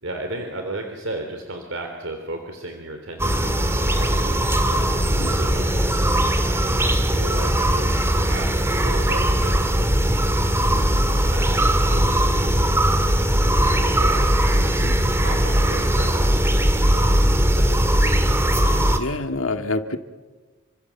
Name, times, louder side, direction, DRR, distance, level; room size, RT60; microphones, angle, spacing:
voice 1, 0.0-5.7 6.5-10.0 10.7-12.7 13.8-14.7 15.2-16.3 16.9-17.3 17.5-18.5, right 2 dB, 65° right, 4 dB, 3.5 m, -35 dB
sound 1, 3.2-19.0, right 1 dB, 10° right, 2.0 m, -19 dB
voice 2, 10.7-11.1 14.8-15.0 19.0-20.0, left 2 dB, 75° left, 7 dB, 1.9 m, -28 dB
29.5 x 26.5 x 7.3 m, 1.3 s
head